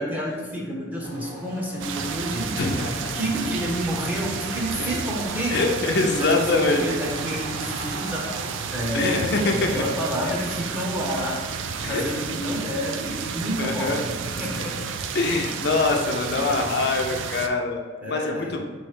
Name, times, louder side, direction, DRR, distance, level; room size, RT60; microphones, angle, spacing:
voice 1, 0.0-2.7 3.1-5.6 6.1-8.3 8.7-14.8 15.7-15.8 18.0-18.6, equal, 10° right, -3 dB, 0.6 m, -29 dB
sound 1, 1.0-10.5, right 1 dB, 45° right, 1.3 m, -39 dB
sound 2, 1.8-17.5, right 6 dB, 70° right, 0.3 m, -32 dB
voice 2, 2.6-3.2 4.7-4.9 5.5-6.8 8.9-9.8 10.2-10.3 11.8-12.0 13.6-14.0 15.1-18.6, left 3 dB, 55° left, 2 dB, 0.5 m, -24 dB
3.5 x 3.1 x 4.8 m, 1.5 s
head